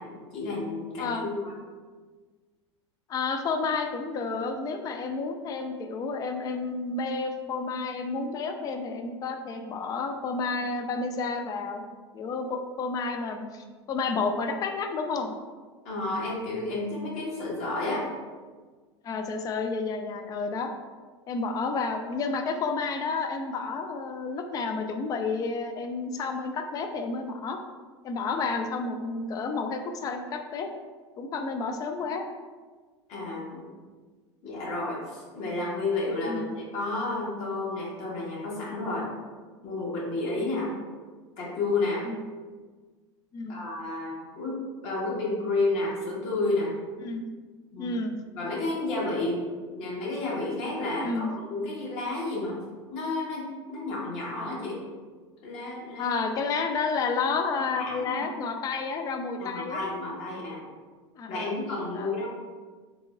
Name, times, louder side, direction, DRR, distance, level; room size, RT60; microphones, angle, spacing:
voice 1, 0.0-1.4 15.8-18.0 33.1-33.7 34.4-39.1 39.6-40.7 41.4-42.0 43.5-44.6 44.8-46.7 47.7-47.9 48.4-49.4 49.7-52.6 52.9-54.8 55.4-56.2 57.8-58.2 59.4-60.6 61.3-62.3, left 2 dB, 45° left, -5 dB, 1.4 m, -31 dB
voice 2, 3.1-11.8 12.1-15.3 19.0-20.7 21.3-27.6 28.0-30.7 31.2-32.2 36.3-36.5 40.4-40.6 42.0-42.2 43.3-43.6 47.0-47.2 47.8-48.2 51.0-51.3 54.3-54.5 56.0-59.8 61.2-61.6 61.9-62.2, left 4 dB, 25° left, 6 dB, 0.3 m, -31 dB
3.6 x 2.9 x 2.5 m, 1.4 s
hypercardioid pair, 85°, 16 cm